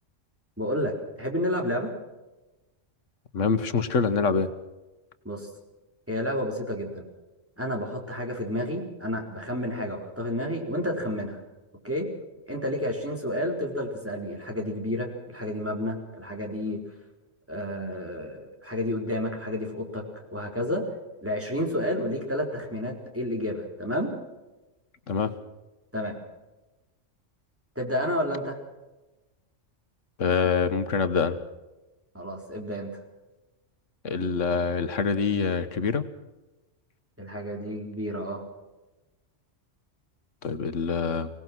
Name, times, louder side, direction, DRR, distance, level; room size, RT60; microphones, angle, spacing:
voice 1, 0.6-1.9 5.2-5.5 6.1-7.0 7.6-11.4 11.8-12.1 12.5-16.8 17.5-20.0 20.3-20.9 21.2-24.1 25.9-26.2 27.8-28.6 32.1-33.0 37.2-38.4, left 1 dB, 10° right, 1 dB, 4.2 m, -30 dB
voice 2, 3.3-4.5 25.1-25.3 30.2-31.4 34.0-36.0 40.4-41.3, left 5 dB, 90° left, 10 dB, 1.6 m, -25 dB
25.0 x 18.0 x 6.1 m, 1.1 s
omnidirectional pair, 1.3 m